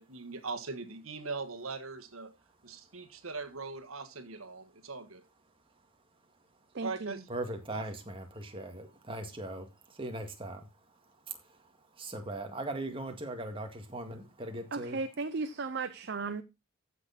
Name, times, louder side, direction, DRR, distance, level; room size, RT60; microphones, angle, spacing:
voice 1, 0.0-2.3 2.6-5.2 6.8-7.3 7.7-7.8, right 4 dB, 85° right, 1.6 m, -40 dB
voice 2, 6.7-7.2 14.7-16.4, right 4 dB, 55° right, 0.7 m, -35 dB
voice 3, 7.3-10.7 11.3-11.4 12.0-15.0, right 1 dB, 25° right, 2.0 m, -39 dB
14.5 x 6.5 x 4.1 m
head